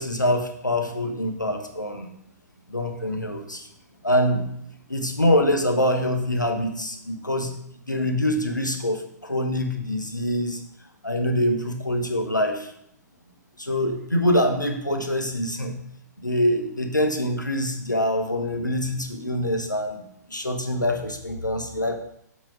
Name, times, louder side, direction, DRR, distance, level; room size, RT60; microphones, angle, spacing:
voice 1, 0.0-2.1 2.7-3.7 4.0-4.5 4.9-7.5 7.9-10.6 11.0-12.7 13.6-15.7 16.2-20.0 20.3-21.9, left 1 dB, 90° left, 5 dB, 1.2 m, -24 dB
7.6 x 5.9 x 4.9 m, 0.72 s
figure-of-eight pair, 115°, 10 cm